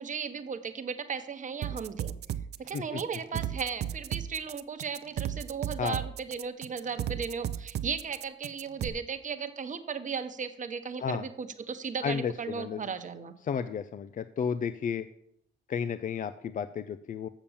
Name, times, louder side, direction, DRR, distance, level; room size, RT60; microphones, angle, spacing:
voice 1, 0.0-2.1 2.6-13.3, right 6 dB, 40° right, 8 dB, 1.0 m, -36 dB
sound 1, 1.6-8.9, right 10 dB, 55° right, 0.5 m, -35 dB
voice 2, 12.0-12.8 13.4-15.1 15.7-17.3, left 7 dB, 40° left, 12 dB, 0.4 m, -32 dB
7.2 x 6.9 x 7.1 m, 0.74 s
cardioid pair, 90°, 20 cm